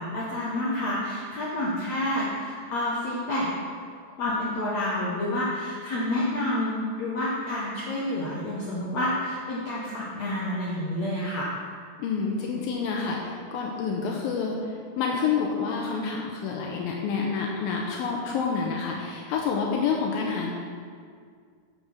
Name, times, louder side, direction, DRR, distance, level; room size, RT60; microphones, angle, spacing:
voice 1, 0.0-3.5 4.2-6.7 7.0-11.5, left 1 dB, 65° left, -6 dB, 1.8 m, -29 dB
voice 2, 12.0-14.6 15.0-20.5, left 5 dB, 80° left, -1 dB, 2.5 m, -28 dB
7.7 x 6.6 x 6.0 m, 2.1 s
omnidirectional pair, 4.2 m